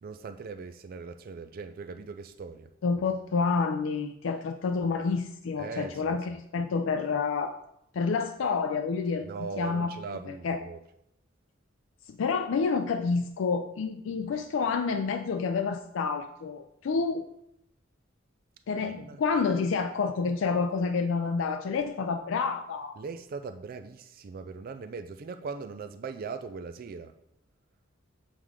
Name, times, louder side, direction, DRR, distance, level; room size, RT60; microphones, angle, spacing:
voice 1, 0.0-2.7 5.6-5.9 9.2-10.8 18.8-19.2 23.0-27.1, right 4 dB, 50° right, 8 dB, 0.4 m, -40 dB
voice 2, 2.8-7.6 7.9-9.3 9.6-9.9 10.3-10.6 12.1-17.2 18.7-22.9, left 5 dB, 75° left, 6 dB, 0.4 m, -28 dB
7.3 x 3.6 x 4.8 m, 0.78 s
head